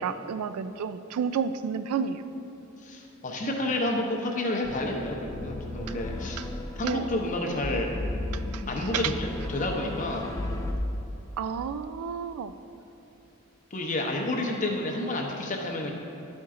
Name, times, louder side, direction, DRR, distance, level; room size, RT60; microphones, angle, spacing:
voice 1, 0.0-2.2 6.4-6.5 6.8-7.1 8.3-8.6 8.9-9.1 11.4-12.5, right 7 dB, 90° right, 12 dB, 0.3 m, -31 dB
voice 2, 2.8-6.4 6.8-7.9 8.7-10.3 13.7-15.9, left 1 dB, 35° left, 1 dB, 0.7 m, -30 dB
sound 1, 4.6-10.7, left 1 dB, 15° left, 0.3 m, -35 dB
11.0 x 4.4 x 3.7 m, 2.9 s
head